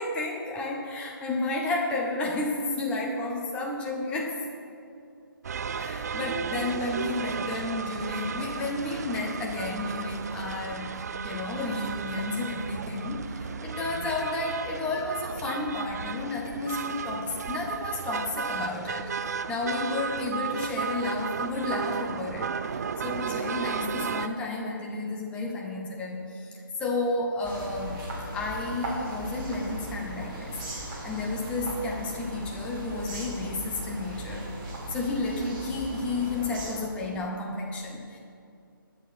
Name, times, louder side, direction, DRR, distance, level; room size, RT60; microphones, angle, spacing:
voice 1, 0.0-4.4 5.8-28.0 28.3-34.4 34.9-38.2, left 2 dB, 10° left, -1 dB, 1.1 m, -32 dB
sound 1, 5.4-24.3, right 6 dB, 45° right, 0.4 m, -34 dB
sound 2, 27.4-36.8, right 1 dB, 20° right, 2.4 m, -38 dB
22.0 x 7.4 x 4.4 m, 2.4 s
figure-of-eight pair, 155°, 12 cm